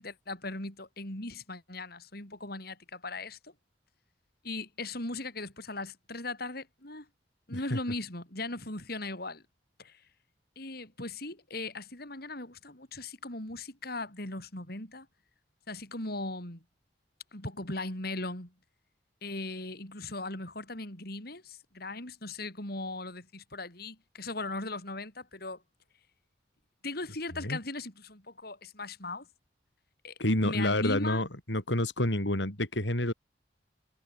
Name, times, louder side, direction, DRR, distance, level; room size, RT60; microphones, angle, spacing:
voice 1, 0.0-3.5 4.4-7.1 7.5-9.4 9.8-10.0 10.6-15.1 15.7-16.6 17.3-18.5 19.2-25.6 26.8-29.3 30.0-31.2, left 2 dB, 55° left, 7.0 m, -38 dB
voice 2, 30.2-33.1, left 1 dB, 75° left, 6.2 m, -28 dB
head